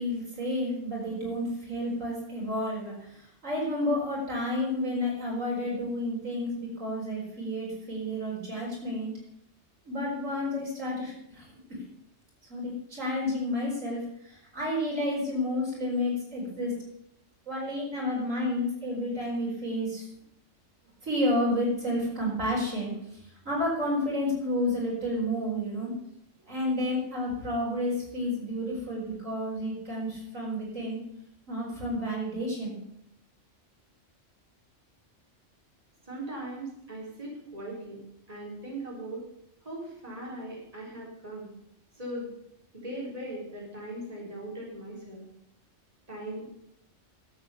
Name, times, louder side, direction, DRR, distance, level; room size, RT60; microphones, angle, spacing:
voice 1, 0.0-9.1 9.9-11.8 12.5-16.8 17.5-20.1 21.0-25.9 26.5-31.0 31.5-32.8, left 1 dB, 85° right, -3 dB, 5.2 m, -31 dB
voice 2, 36.1-38.0 38.3-39.2 39.6-41.5 42.0-42.3 42.7-45.2 46.1-46.5, right 1 dB, 30° right, -4 dB, 4.1 m, -39 dB
12.0 x 8.1 x 7.0 m, 0.76 s
omnidirectional pair, 1.3 m